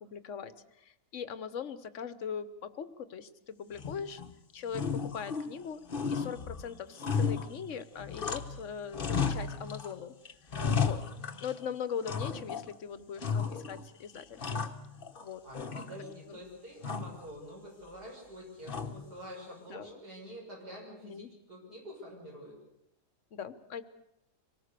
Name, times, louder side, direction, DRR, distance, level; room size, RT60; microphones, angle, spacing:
voice 1, 0.0-4.2 4.5-5.8 6.1-10.1 10.8-11.0 11.4-14.7 15.2-15.4 16.3-16.4 19.7-19.9 21.0-21.3 23.3-23.8, left 7 dB, 55° left, 13 dB, 1.3 m, -40 dB
sound 1, 3.7-4.3 4.7-5.6 5.9-8.6 8.9-9.9 10.2-11.6 12.1-12.7 13.2-13.8 14.2-15.2 15.5-16.3 16.8-17.2 18.7-19.2, left 6 dB, 35° left, 1.2 m, -34 dB
voice 2, 15.4-22.6, equal, 75° right, -1 dB, 6.9 m, -47 dB
25.5 x 18.5 x 6.7 m, 0.84 s
omnidirectional pair, 1.7 m